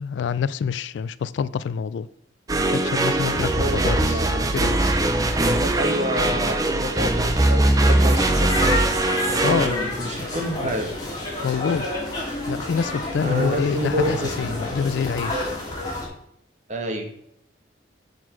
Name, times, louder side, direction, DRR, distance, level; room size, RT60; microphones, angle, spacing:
voice 1, 0.0-2.1 2.5-4.2 4.5-5.0 9.4-9.7 11.4-11.9 12.5-15.5, left 6 dB, 70° left, 0.3 m, -26 dB
sound 1, 2.5-9.7, right 1 dB, 20° right, 0.6 m, -21 dB
voice 2, 3.3-4.6 5.4-9.0 9.3-10.9 13.2-14.6 16.7-17.1, equal, 40° right, 1.2 m, -29 dB
sound 2, 8.1-16.1, left 1 dB, 20° left, 2.2 m, -29 dB
7.3 x 4.0 x 5.9 m
head